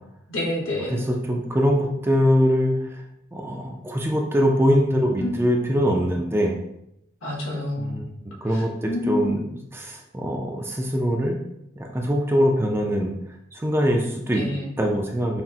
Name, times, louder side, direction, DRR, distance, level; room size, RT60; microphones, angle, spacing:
voice 1, 0.3-1.1 5.2-5.3 7.2-8.0 8.5-9.4 14.3-14.7, left 1 dB, 85° left, -3 dB, 1.3 m, -28 dB
voice 2, 0.9-3.0 3.3-6.6 7.8-9.4 9.7-11.4 11.8-13.1 13.5-14.5 14.8-15.4, equal, 10° right, 1 dB, 0.3 m, -23 dB
5.9 x 2.0 x 2.7 m, 0.80 s
head